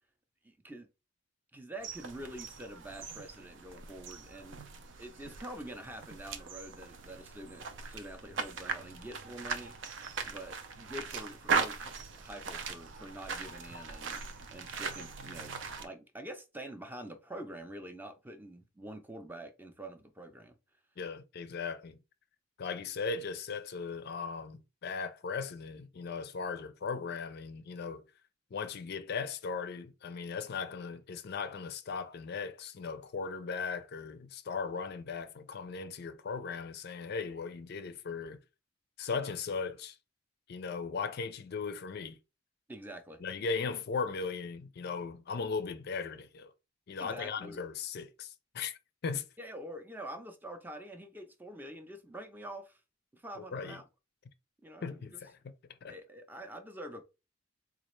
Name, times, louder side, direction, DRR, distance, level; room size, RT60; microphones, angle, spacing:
voice 1, 0.4-0.9 1.5-4.6 5.0-9.7 10.2-14.2 14.5-15.6 15.8-20.6 42.7-43.2 47.0-47.6 49.4-52.8 53.1-53.9 54.6-55.2 55.9-57.0, right 1 dB, 10° right, 0.5 m, -46 dB
sound 1, 1.8-15.9, right 5 dB, 65° right, 0.5 m, -39 dB
voice 2, 21.0-21.9 22.6-28.0 28.5-38.4 39.0-40.0 40.5-42.2 43.2-46.5 46.9-49.3 53.4-53.8 54.8-55.5 55.8-55.9, left 5 dB, 55° left, 0.4 m, -38 dB
4.0 x 2.4 x 3.1 m
head